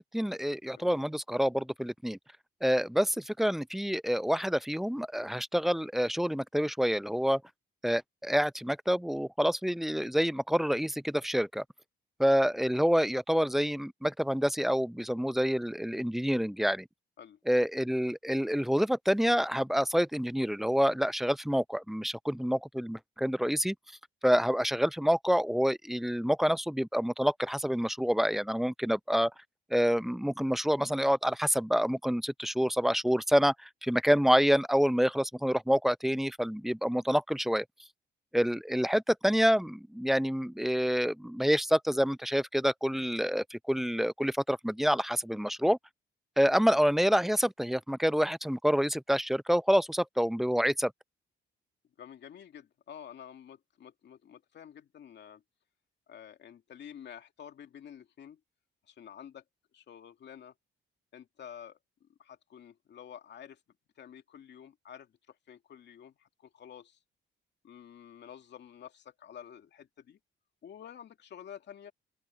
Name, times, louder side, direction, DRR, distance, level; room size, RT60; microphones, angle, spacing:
voice 1, 0.0-2.2 2.6-7.4 7.8-11.6 12.2-16.9 17.5-23.8 24.2-29.3 29.7-37.6 38.3-45.8 46.4-50.9, equal, ahead, 0.5 m, -27 dB
voice 2, 0.7-1.1 17.2-17.4 52.0-55.4 56.1-58.4 58.9-59.4 59.7-60.5 61.1-63.6 64.0-67.0 67.6-70.2 70.6-71.9, left 9 dB, 60° left, 2.4 m, -50 dB
open air
cardioid pair, 90°, 20 cm